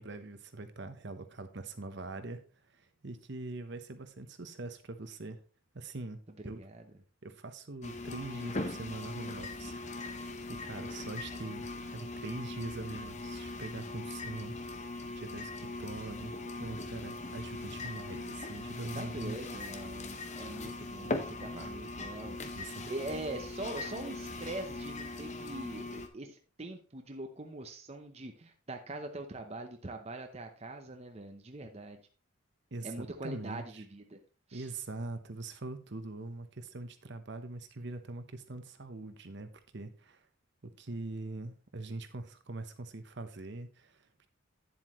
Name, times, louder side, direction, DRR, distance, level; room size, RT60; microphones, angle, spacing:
voice 1, 0.0-2.4 2.7-5.4 5.7-6.6 7.2-14.7 15.1-16.3 16.6-19.6 22.6-22.9 32.7-33.8 34.5-40.2 40.6-44.3, right 2 dB, 55° right, 9 dB, 0.9 m, -43 dB
sound 1, 7.8-26.1, left 2 dB, 35° left, 0.9 m, -40 dB
voice 2, 18.9-32.0 32.8-34.2 34.5-34.7, right 2 dB, 30° right, 5 dB, 0.7 m, -43 dB
9.8 x 7.6 x 3.1 m, 0.37 s
head